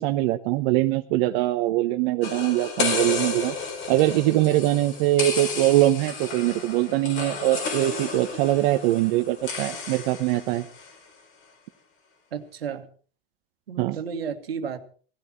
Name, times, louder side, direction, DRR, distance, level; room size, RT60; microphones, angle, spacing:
voice 1, 0.0-3.5 3.9-10.6 13.8-14.0, right 16 dB, 55° right, 7 dB, 1.1 m, -22 dB
sound 1, 2.2-10.9, left 4 dB, 45° left, 4.5 m, -32 dB
voice 2, 12.3-12.8 13.7-14.8, right 6 dB, 85° right, 7 dB, 1.9 m, -32 dB
17.5 x 12.0 x 4.4 m, 0.43 s
hypercardioid pair, 100°, 29 cm